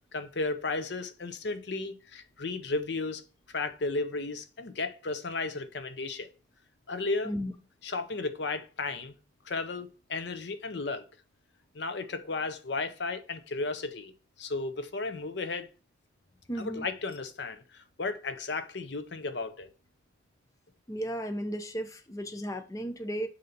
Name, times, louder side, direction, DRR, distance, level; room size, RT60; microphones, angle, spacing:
voice 1, 0.1-3.2 3.5-6.3 6.9-7.3 7.8-9.1 9.4-11.1 11.7-14.1 14.4-15.7 16.6-19.7, left 3 dB, 65° left, 0.7 m, -34 dB
voice 2, 16.5-16.9 20.9-23.3, equal, 15° left, 0.5 m, -34 dB
6.7 x 2.8 x 5.1 m
head